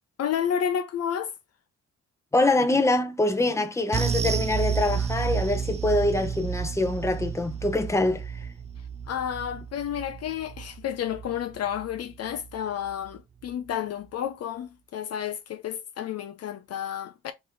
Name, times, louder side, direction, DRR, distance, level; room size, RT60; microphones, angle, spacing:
voice 1, 0.2-1.3 9.1-17.3, left 9 dB, 55° left, 0.5 m, -31 dB
voice 2, 2.3-8.5, left 2 dB, 10° left, 0.8 m, -24 dB
sound 1, 3.9-12.6 12.9-13.1 13.5-13.6, right 7 dB, 25° right, 0.4 m, -31 dB
3.6 x 3.0 x 3.7 m
cardioid pair, 90°, 30 cm